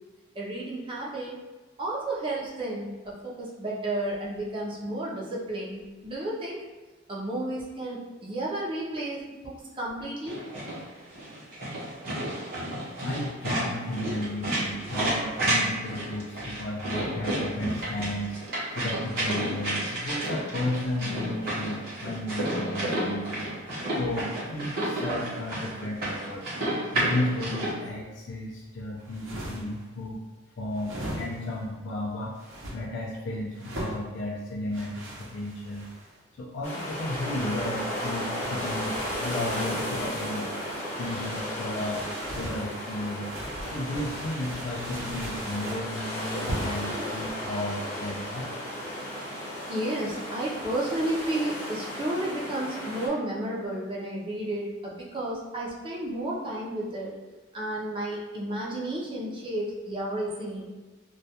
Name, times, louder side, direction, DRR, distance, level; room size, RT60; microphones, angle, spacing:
voice 1, 0.3-1.4 1.8-6.6 7.1-10.4 14.0-14.1 46.9-47.1 49.7-57.1 57.5-60.7, right 1 dB, 25° right, -5 dB, 0.4 m, -32 dB
sound 1, 10.3-27.7, right 1 dB, 50° right, 0.8 m, -31 dB
voice 2, 13.0-23.5 24.0-26.5 26.9-30.2 30.6-35.9 36.3-40.5 41.0-42.0 42.3-43.3 43.7-48.6, left 1 dB, 65° left, -3 dB, 0.3 m, -33 dB
sound 2, 29.0-29.8 30.7-31.6 32.3-32.8 33.5-34.0 34.7-36.2 37.1-40.9 41.8-42.6 43.2-45.9 46.5-46.9, right 1 dB, 90° right, 0.6 m, -40 dB
sound 3, 36.6-53.1, equal, 35° left, 0.8 m, -34 dB
2.2 x 2.2 x 2.7 m, 1.3 s
head